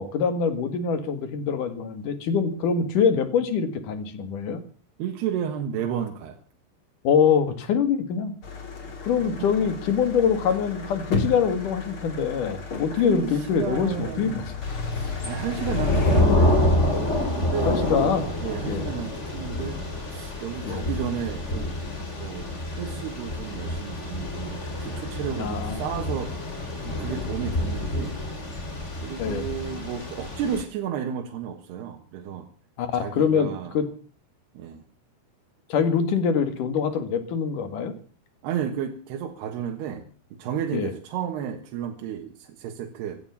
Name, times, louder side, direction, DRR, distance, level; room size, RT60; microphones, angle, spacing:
voice 1, 0.0-4.6 7.0-8.3 9.0-14.4 17.7-18.3 18.6-18.9 20.6-20.9 25.4-25.8 29.2-29.4 32.8-33.9 35.7-37.9 40.7-40.9, left 6 dB, 55° left, 10 dB, 3.2 m, -24 dB
voice 2, 5.0-6.4 9.4-9.7 12.9-14.4 14.9-16.7 17.3-18.2 18.4-19.8 20.1-21.8 22.2-26.3 26.8-28.2 29.0-32.5 32.9-33.7 34.6-34.8 38.4-40.1 40.4-43.2, right 8 dB, 80° right, 4 dB, 3.5 m, -32 dB
sound 1, 8.4-16.2, left 4 dB, 35° left, 3.1 m, -32 dB
Thunder / Rain, 14.6-30.6, left 1 dB, 20° left, 2.9 m, -27 dB
16.0 x 12.0 x 7.1 m, 0.40 s
omnidirectional pair, 4.7 m